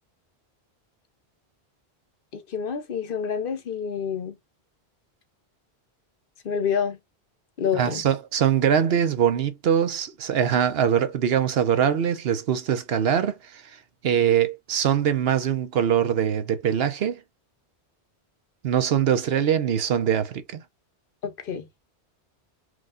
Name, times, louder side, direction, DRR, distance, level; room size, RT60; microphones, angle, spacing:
voice 1, 2.3-4.3 6.4-7.0 7.6-8.0 21.2-21.7, left 7 dB, 55° left, 1.0 m, -28 dB
voice 2, 7.7-13.6 14.0-17.2 18.6-20.6, right 9 dB, 65° right, 0.9 m, -23 dB
4.9 x 2.3 x 3.6 m
omnidirectional pair, 1.1 m